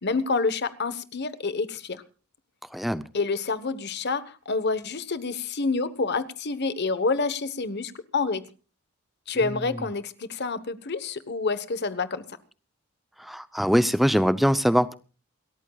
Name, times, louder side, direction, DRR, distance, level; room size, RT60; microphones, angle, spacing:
voice 1, 0.0-2.0 3.1-8.4 9.3-12.2, left 4 dB, 50° left, 13 dB, 1.1 m, -28 dB
voice 2, 2.7-3.0 9.4-9.6 13.2-14.9, equal, ahead, 13 dB, 0.6 m, -22 dB
28.5 x 13.5 x 2.4 m, 0.34 s
head